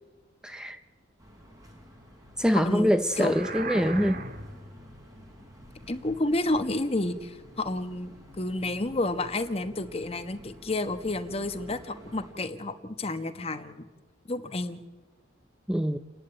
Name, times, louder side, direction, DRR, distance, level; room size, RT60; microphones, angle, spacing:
voice 1, 0.4-0.8 2.4-4.2 15.7-16.0, equal, 5° right, 0.6 m, -24 dB
sound 1, 1.2-12.3, equal, 20° right, 4.6 m, -50 dB
voice 2, 2.6-3.3 5.9-13.8 14.3-14.8, left 2 dB, 30° left, 1.2 m, -30 dB
sound 2, 3.1-4.7, right 3 dB, 50° right, 1.8 m, -36 dB
30.0 x 11.0 x 9.0 m
head